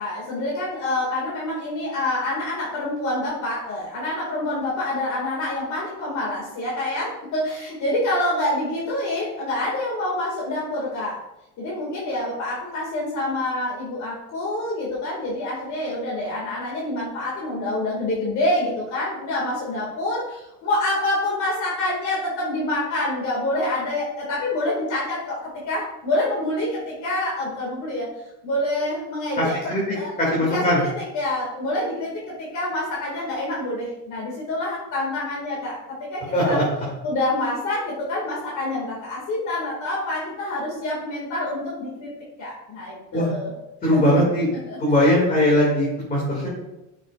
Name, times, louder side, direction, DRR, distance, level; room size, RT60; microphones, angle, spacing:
voice 1, 0.0-11.2 11.6-28.1 28.4-29.6 29.9-35.8 36.1-36.6 37.0-42.1 42.4-43.5 43.9-44.2 44.6-44.8, left 1 dB, 45° left, -5 dB, 2.3 m, -27 dB
voice 2, 29.4-29.8 30.2-30.8 36.3-36.6 43.1-43.3 43.8-44.5 44.8-46.5, left 1 dB, 20° left, -6 dB, 2.4 m, -20 dB
12.5 x 6.5 x 2.5 m, 0.94 s
cardioid pair, 165°, 40 cm